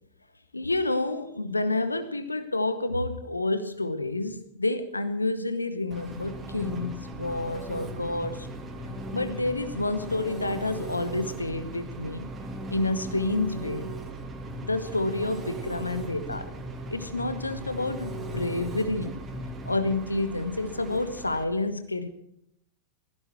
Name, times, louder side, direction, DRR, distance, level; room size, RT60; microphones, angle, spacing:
voice 1, 0.5-8.5 9.1-12.3 12.7-13.9 14.6-16.5 16.9-19.2 19.7-22.1, left 2 dB, 80° left, 11 dB, 1.1 m, -29 dB
Engine, 5.9-21.4, right 5 dB, 20° right, 2.8 m, -40 dB
sound 1, 6.1-20.0, left 2 dB, 25° left, 2.0 m, -41 dB
18.0 x 16.0 x 4.6 m, 0.76 s
figure-of-eight pair, 90°, 0 cm